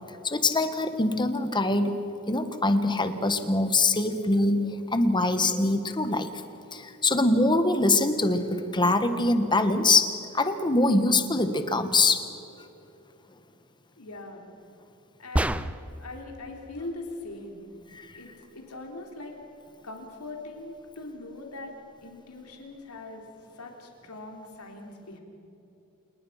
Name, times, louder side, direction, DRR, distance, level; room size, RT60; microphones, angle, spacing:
voice 1, 0.2-1.9 2.3-6.3 6.7-12.2 18.0-18.1, left 2 dB, 20° left, 9 dB, 1.4 m, -23 dB
voice 2, 14.0-14.4 15.2-15.7 16.0-17.6 18.1-19.4 19.8-21.7 22.0-23.3 23.5-25.2, left 2 dB, 85° left, 2 dB, 3.5 m, -41 dB
sound 1, 15.4-16.1, right 1 dB, 5° right, 0.5 m, -27 dB
27.5 x 20.0 x 5.8 m, 2.9 s
head